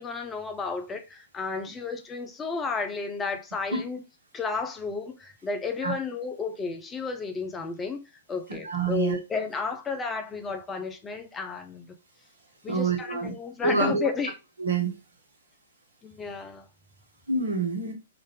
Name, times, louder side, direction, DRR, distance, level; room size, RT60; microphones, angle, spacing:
voice 1, 0.0-4.0 4.3-11.9 12.6-14.3 16.0-16.6, left 4 dB, 15° left, 0.5 m, -32 dB
voice 2, 8.5-9.2 12.7-13.3 13.6-14.1 14.6-14.9 17.3-17.9, right 4 dB, 70° right, 1.2 m, -27 dB
3.8 x 2.5 x 3.5 m
figure-of-eight pair, 110°, 0 cm